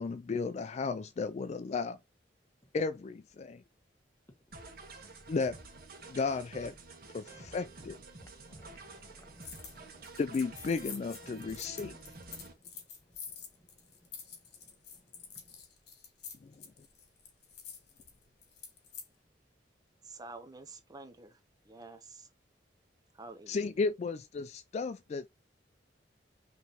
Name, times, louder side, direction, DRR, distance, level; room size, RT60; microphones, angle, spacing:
voice 1, 0.0-2.0 2.7-3.6 5.3-5.6 6.1-6.7 7.1-8.0 10.2-11.9 16.4-16.5 23.5-25.3, left 4 dB, 40° left, 0.3 m, -34 dB
sound 1, 4.5-12.5, right 3 dB, 60° right, 1.3 m, -50 dB
voice 2, 8.2-10.0 11.2-11.7, equal, 15° left, 1.2 m, -59 dB
sound 2, 9.4-9.8 10.0-19.1, left 6 dB, 65° left, 1.9 m, -48 dB
voice 3, 20.1-21.3 21.7-22.3 23.2-23.7, right 3 dB, 20° right, 0.5 m, -48 dB
5.5 x 3.2 x 2.9 m
head